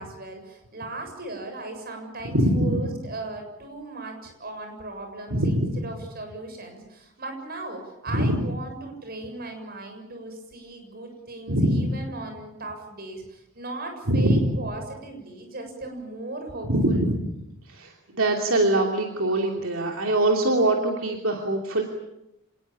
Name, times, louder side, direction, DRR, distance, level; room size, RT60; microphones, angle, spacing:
voice 1, 0.0-17.0, right 2 dB, 45° right, 5 dB, 7.2 m, -37 dB
voice 2, 2.2-2.8 5.3-5.7 8.1-8.3 11.5-11.9 14.1-14.5 16.7-17.1 17.7-21.8, right 1 dB, 70° right, 2 dB, 2.9 m, -23 dB
26.5 x 20.0 x 8.6 m, 0.87 s
head